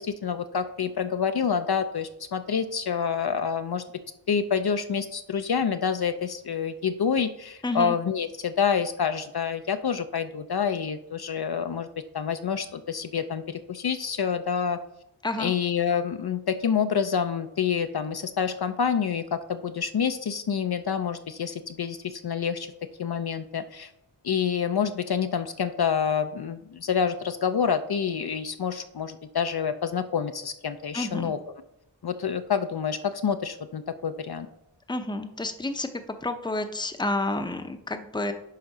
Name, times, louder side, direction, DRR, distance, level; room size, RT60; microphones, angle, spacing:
voice 1, 0.0-3.8 4.3-11.9 12.1-14.8 15.4-22.7 23.0-23.9 24.2-31.4 32.0-34.5, left 7 dB, 60° left, 9 dB, 0.5 m, -27 dB
voice 2, 7.6-8.0 15.2-15.5 30.9-31.3 34.9-35.9 36.2-38.3, left 2 dB, 10° left, 8 dB, 0.6 m, -29 dB
10.5 x 3.8 x 5.5 m, 0.84 s
wide cardioid pair, 80°, 44 cm